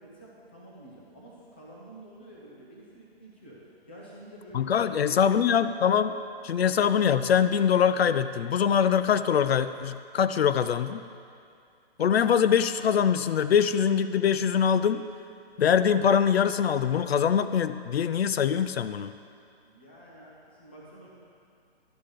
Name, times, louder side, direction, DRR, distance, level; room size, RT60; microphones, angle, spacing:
voice 1, 0.0-3.6 3.9-5.6 19.6-21.1, right 1 dB, 10° left, -5 dB, 0.5 m, -48 dB
voice 2, 4.5-6.2 6.4-11.0 12.0-15.1 15.6-19.1, left 8 dB, 70° left, 12 dB, 0.5 m, -23 dB
12.0 x 5.7 x 5.0 m, 2.4 s
hypercardioid pair, 170°, 31 cm